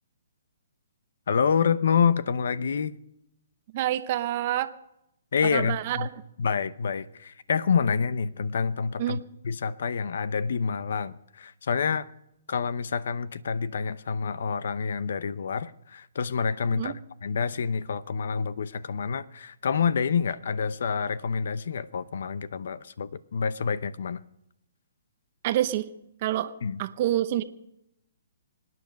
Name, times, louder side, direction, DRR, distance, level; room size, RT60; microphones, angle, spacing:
voice 1, 1.3-2.9 5.3-6.1 6.4-12.1 12.5-24.2 26.6-26.8, left 6 dB, 70° left, 0.8 m, -27 dB
voice 2, 3.7-4.7 5.5-6.1 9.0-9.2 16.7-16.9 25.4-25.9 26.2-26.5 26.8-27.4, right 13 dB, 40° right, 0.8 m, -27 dB
25.5 x 9.7 x 5.3 m
hypercardioid pair, 140°, 0 cm